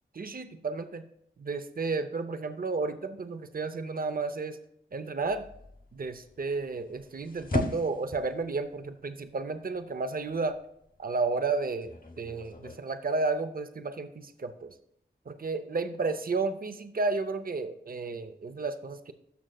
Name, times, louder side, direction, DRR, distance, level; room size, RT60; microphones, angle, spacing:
voice 1, 0.2-1.1 1.4-4.6 4.9-5.4 5.9-10.6 11.0-14.7 15.3-19.1, right 3 dB, 50° right, 10 dB, 0.6 m, -32 dB
sound 1, 5.2-12.8, left 2 dB, 50° left, 1.0 m, -39 dB
12.5 x 6.3 x 2.3 m, 0.74 s
wide cardioid pair, 60°, 19 cm